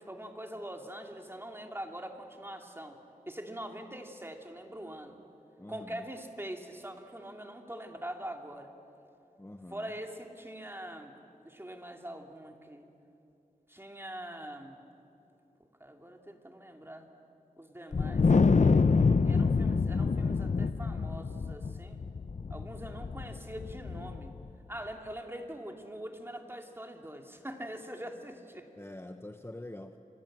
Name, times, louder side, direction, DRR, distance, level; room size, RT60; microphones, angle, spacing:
voice 1, 0.0-3.0 3.3-5.2 5.7-8.7 9.7-11.1 11.4-12.8 13.7-14.8 15.8-17.1 17.6-18.9 19.2-22.0 22.5-24.4 24.7-28.7, right 1 dB, 15° right, 3 dB, 2.9 m, -43 dB
voice 2, 5.6-6.0 9.4-9.9 28.8-30.0, left 1 dB, 15° left, 7 dB, 1.1 m, -45 dB
Wind, 17.9-24.4, left 4 dB, 55° left, 0.7 m, -26 dB
29.5 x 25.5 x 7.7 m, 2.7 s
wide cardioid pair, 55°, 14 cm